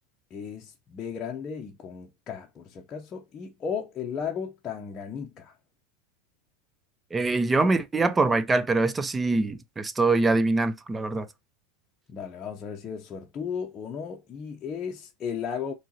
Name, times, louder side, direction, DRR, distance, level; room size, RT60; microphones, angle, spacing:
voice 1, 0.3-5.5 12.1-15.7, left 7 dB, 30° left, 0.7 m, -35 dB
voice 2, 7.1-11.3, right 3 dB, 15° right, 0.6 m, -24 dB
4.5 x 3.1 x 2.8 m
hypercardioid pair, 100°, 0 cm